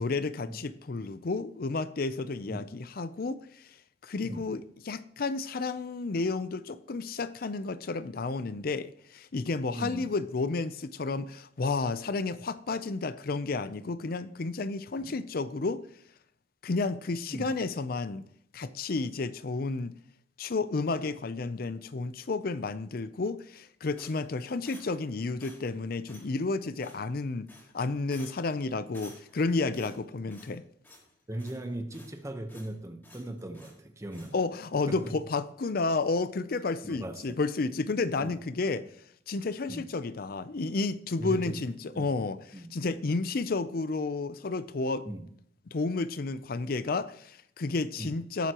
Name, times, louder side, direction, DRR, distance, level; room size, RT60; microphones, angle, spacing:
voice 1, 0.0-3.4 4.0-15.8 16.6-18.2 18.5-20.0 20.4-27.5 27.7-30.6 34.3-38.8 39.3-45.1 45.7-48.5, left 3 dB, 55° left, 0.5 m, -31 dB
voice 2, 4.2-4.5 9.7-10.1 15.0-15.2 17.3-17.5 31.3-34.4 34.9-35.1 36.8-37.4 38.2-38.4 39.7-39.9 41.2-41.6 41.9-42.1 42.5-42.7 45.0-45.2 48.0-48.1, right 1 dB, 15° right, 1.0 m, -38 dB
sound 1, 24.0-25.1 25.4-25.8 26.1-26.3 26.8-27.2 27.5-27.8 28.1-28.5 28.9-29.4 29.7-30.6 30.8-31.1 31.4-32.2 32.5-32.7 33.0-33.8 34.1-34.3, left 1 dB, 10° left, 4.9 m, -53 dB
18.0 x 9.2 x 3.0 m
head